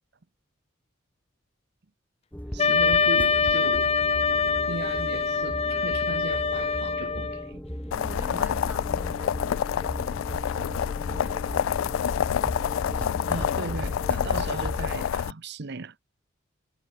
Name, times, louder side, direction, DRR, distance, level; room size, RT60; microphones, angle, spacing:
sound 1, 2.3-15.0, equal, 10° left, 1.7 m, -37 dB
voice 1, 2.5-3.9 4.7-7.6 8.3-8.4 13.3-16.2, right 3 dB, 55° right, 0.9 m, -37 dB
Wind instrument woodwind instrument, 2.6-7.5, left 5 dB, 30° left, 0.8 m, -24 dB
sound 2, 7.9-15.3, left 8 dB, 75° left, 0.3 m, -28 dB
voice 2, 7.9-12.3, right 1 dB, 10° right, 3.4 m, -49 dB
head